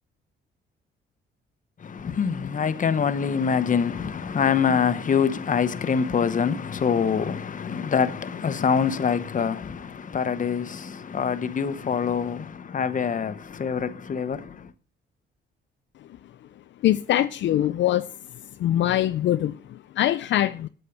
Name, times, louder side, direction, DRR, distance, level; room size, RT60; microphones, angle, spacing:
voice 1, 1.8-14.7, left 6 dB, 40° left, 1.1 m, -25 dB
voice 2, 16.8-18.2 18.6-20.7, left 12 dB, 65° left, 0.5 m, -23 dB
8.5 x 8.5 x 5.9 m
cardioid pair, 90°, 20 cm